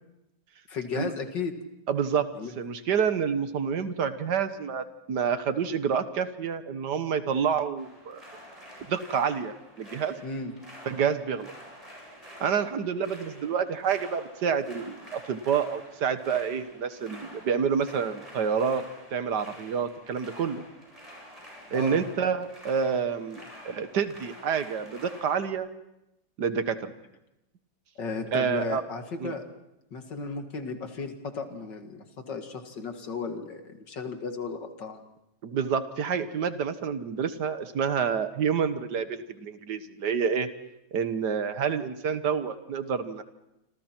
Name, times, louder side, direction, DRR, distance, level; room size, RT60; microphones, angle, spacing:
voice 1, 0.7-1.5 2.3-2.5 10.2-10.5 21.7-22.0 28.0-29.4 29.9-35.0, left 4 dB, 75° left, 6 dB, 2.6 m, -35 dB
voice 2, 1.9-2.3 2.6-8.2 8.9-10.1 10.9-11.5 12.4-18.8 19.1-20.6 21.7-25.7 26.4-26.9 28.3-28.8 29.2-29.3 35.4-40.5 40.9-43.2, right 7 dB, 70° right, 10 dB, 1.8 m, -28 dB
sound 1, 7.8-25.5, equal, 20° right, 8.1 m, -48 dB
27.5 x 26.5 x 4.5 m, 0.88 s
omnidirectional pair, 1.9 m